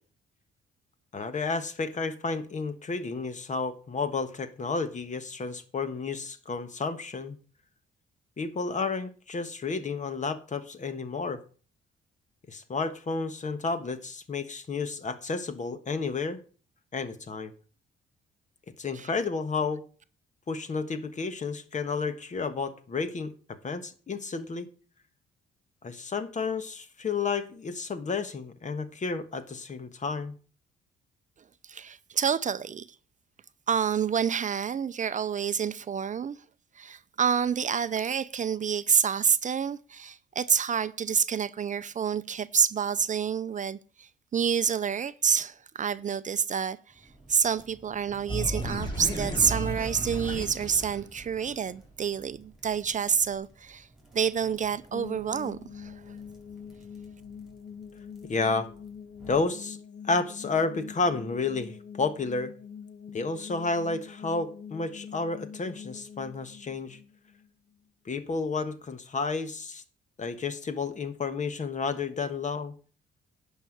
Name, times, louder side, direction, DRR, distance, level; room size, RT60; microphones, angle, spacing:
voice 1, 1.1-7.4 8.4-11.4 12.5-16.4 16.9-17.5 18.8-19.8 20.5-24.7 25.8-30.3 58.2-58.7 59.3-59.8 60.1-62.5 63.1-67.0 68.0-69.8 70.2-72.7, left 4 dB, 40° left, 1.3 m, -31 dB
voice 2, 31.6-32.9 33.7-36.4 36.8-46.8 47.3-53.9 54.1-55.9, right 7 dB, 40° right, 0.5 m, -28 dB
sound 1, 46.9-59.4, right 2 dB, ahead, 5.3 m, -54 dB
sound 2, 48.3-51.6, right 1 dB, 25° left, 3.9 m, -33 dB
sound 3, 54.9-67.8, left 7 dB, 60° left, 1.6 m, -45 dB
10.5 x 5.7 x 6.5 m
cardioid pair, 90°, 20 cm